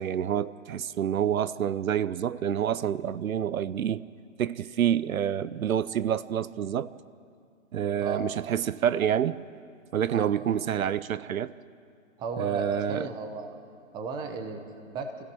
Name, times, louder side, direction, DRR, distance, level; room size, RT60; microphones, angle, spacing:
voice 1, 0.0-4.0 4.4-6.9 7.7-9.4 9.9-11.5 12.4-13.1, right 9 dB, 80° right, 18 dB, 0.7 m, -28 dB
voice 2, 8.0-8.5 10.1-10.3 12.2-13.6 13.9-15.1, right 5 dB, 10° right, 6 dB, 0.9 m, -34 dB
27.5 x 16.5 x 6.2 m, 2.4 s
hypercardioid pair, 155°, 41 cm